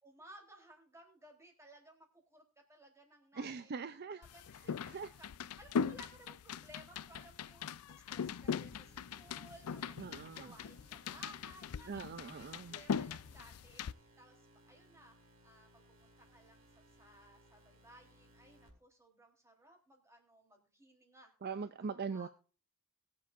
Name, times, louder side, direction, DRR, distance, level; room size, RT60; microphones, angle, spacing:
voice 1, 0.0-2.4 2.7-5.3 5.6-15.2 15.4-21.3 21.8-22.3, right 1 dB, 15° right, 1 dB, 3.6 m, -59 dB
voice 2, 3.3-4.2 4.6-5.1 10.0-10.5 11.9-12.8 21.4-22.3, right 5 dB, 45° right, 12 dB, 0.5 m, -42 dB
sound 1, 4.2-13.9, left 6 dB, 85° left, 0.4 m, -40 dB
sound 2, 8.7-18.7, equal, 65° right, 4.9 m, -65 dB
22.0 x 7.6 x 2.5 m, 0.37 s
head